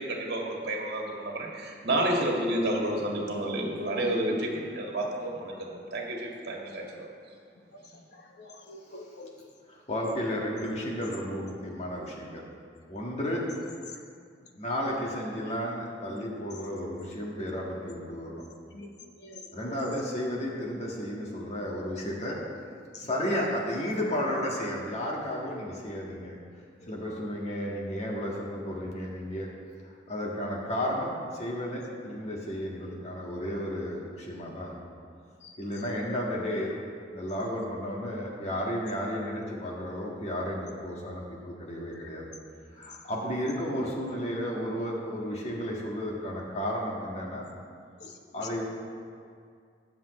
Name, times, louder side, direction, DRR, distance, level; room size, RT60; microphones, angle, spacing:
voice 1, 0.0-7.1, right 1 dB, 65° right, -1 dB, 2.1 m, -30 dB
voice 2, 8.1-9.3 13.9-14.0 14.5-14.6 18.3-18.4 18.7-20.0 22.9-23.1 26.8-27.2 35.4-35.9 41.9-42.1 48.0-48.5, left 2 dB, 65° left, 1 dB, 1.2 m, -47 dB
voice 3, 9.7-12.4 12.9-13.5 14.6-18.4 19.5-22.4 23.0-26.3 26.9-29.5 30.1-34.7 35.6-36.7 37.1-42.3 42.8-47.5 48.3-48.6, equal, 40° left, -3 dB, 1.8 m, -33 dB
21.5 x 7.3 x 3.2 m, 2.2 s
head